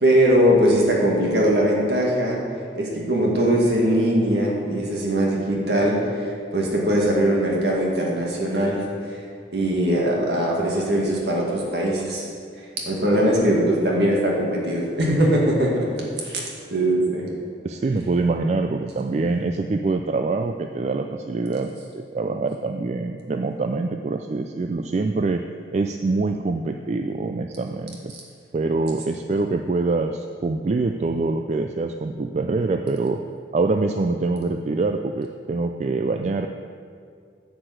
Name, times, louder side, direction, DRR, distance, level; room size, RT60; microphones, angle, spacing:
voice 1, 0.0-2.4 2.8-6.0 6.5-8.8 9.5-12.3 12.8-16.4 16.7-17.3 28.1-28.2, equal, 65° right, -3 dB, 2.1 m, -21 dB
voice 2, 17.6-25.4 25.7-28.1 28.5-33.2 33.5-36.5, right 3 dB, 40° right, 5 dB, 0.3 m, -25 dB
10.0 x 4.8 x 7.7 m, 2.3 s
head